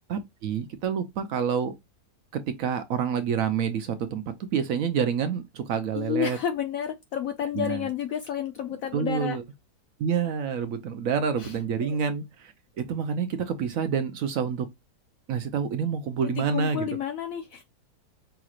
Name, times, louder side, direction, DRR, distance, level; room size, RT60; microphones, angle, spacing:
voice 1, 0.1-1.7 2.3-4.2 4.5-6.4 7.5-7.8 8.9-9.4 10.0-14.7 15.3-16.8, right 7 dB, 70° right, 0.8 m, -28 dB
voice 2, 5.9-9.4 11.4-11.6 11.8-12.0 16.2-17.6, left 9 dB, 70° left, 0.8 m, -30 dB
5.6 x 3.0 x 2.4 m
omnidirectional pair, 1.8 m